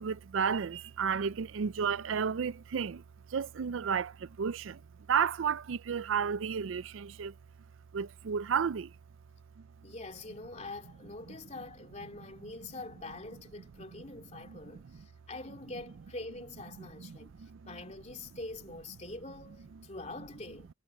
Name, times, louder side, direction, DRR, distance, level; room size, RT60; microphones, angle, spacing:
voice 1, 0.0-3.0 3.3-4.8 5.1-7.3 7.9-8.9 14.5-14.6 16.8-17.7, right 6 dB, 75° right, 0.4 m, -32 dB
voice 2, 9.8-20.7, left 2 dB, 35° left, 2.7 m, -45 dB
head